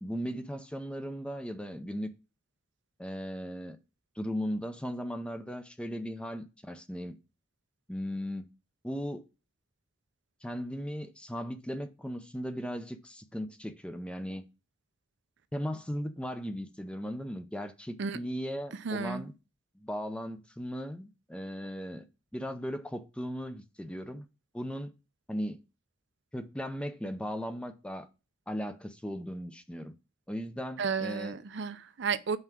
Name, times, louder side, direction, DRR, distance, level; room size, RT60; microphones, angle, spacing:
voice 1, 0.0-2.1 3.0-3.8 4.2-7.1 7.9-8.5 8.8-9.3 10.4-14.4 15.5-19.3 19.8-22.0 22.3-24.3 24.5-24.9 25.3-25.6 26.3-28.1 28.5-29.9 30.3-31.4, equal, 5° left, 0.5 m, -37 dB
voice 2, 18.8-19.2 30.8-32.4, right 5 dB, 60° right, 0.5 m, -32 dB
5.6 x 4.7 x 5.9 m
head